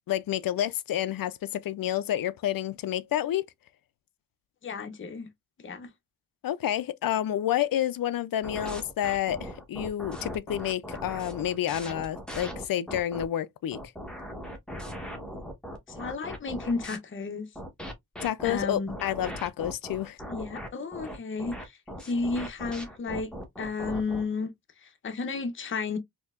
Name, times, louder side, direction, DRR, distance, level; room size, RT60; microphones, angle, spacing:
voice 1, 0.1-3.5 6.4-13.8 18.2-20.2, left 11 dB, 70° left, 0.5 m, -29 dB
voice 2, 4.6-5.3 5.6-5.9 15.9-17.5 18.4-18.9 20.3-23.3 23.6-24.5 24.8-26.0, left 4 dB, 35° left, 0.7 m, -33 dB
sound 1, 8.4-13.2 13.7-17.0 17.6-24.3, equal, ahead, 1.1 m, -39 dB
4.4 x 2.9 x 2.4 m
wide cardioid pair, 130°, 36 cm